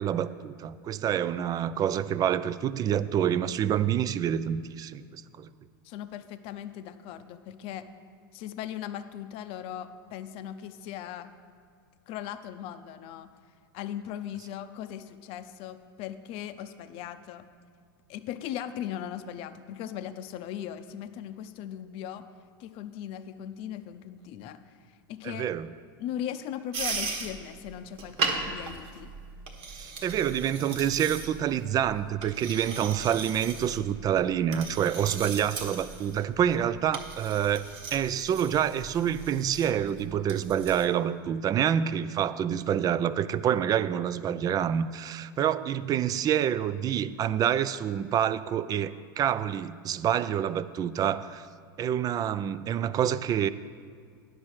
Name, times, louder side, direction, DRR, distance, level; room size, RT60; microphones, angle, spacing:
voice 1, 0.0-5.5 25.2-25.7 29.7-37.7 37.9-51.5 51.8-53.5, right 9 dB, 30° right, 15 dB, 0.4 m, -27 dB
voice 2, 5.8-7.9 8.3-11.3 12.1-13.3 13.7-17.5 18.1-22.2 22.6-24.6 25.1-25.4 26.0-29.1, left 10 dB, 50° left, 11 dB, 0.6 m, -38 dB
sound 1, 26.7-40.8, right 4 dB, 50° right, 1.3 m, -37 dB
10.0 x 6.2 x 6.4 m, 2.1 s
hypercardioid pair, 100°, 12 cm